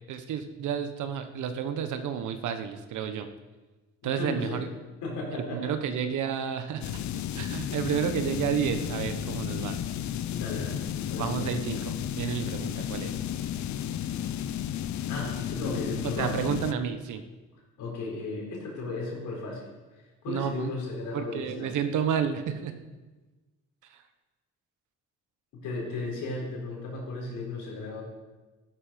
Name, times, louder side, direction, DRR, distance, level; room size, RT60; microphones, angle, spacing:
voice 1, 0.1-3.3 4.0-4.7 5.3-6.9 7.3-9.8 11.2-13.2 16.2-17.2 20.3-20.7 21.1-22.8 23.9-24.0, right 8 dB, 80° right, 9 dB, 1.3 m, -31 dB
voice 2, 4.0-4.6 5.0-5.8 10.3-11.7 15.1-16.4 17.8-21.8 25.5-28.0, left 2 dB, 85° left, -1 dB, 4.3 m, -35 dB
sound 1, 6.8-16.7, left 10 dB, 70° left, 0.7 m, -33 dB
13.5 x 11.0 x 5.2 m, 1.2 s
cardioid pair, 90°, 30 cm